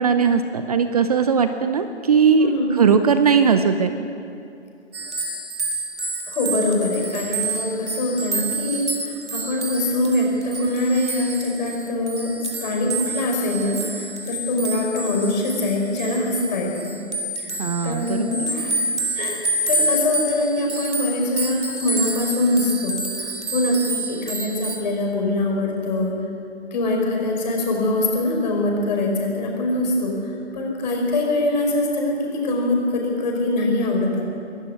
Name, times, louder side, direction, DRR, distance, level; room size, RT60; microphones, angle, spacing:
voice 1, 0.0-3.9 17.6-18.5, right 6 dB, 35° right, 9 dB, 0.7 m, -19 dB
voice 2, 2.4-2.8 6.3-17.0 17.4-17.6 17.8-18.9 19.1-26.2 26.7-30.2 30.5-34.3, left 2 dB, 40° left, 0 dB, 5.3 m, -23 dB
sound 1, 4.9-24.8, right 2 dB, 75° right, 3.6 m, -28 dB
23.5 x 13.0 x 9.8 m, 2.6 s
hypercardioid pair, 155°, 35 cm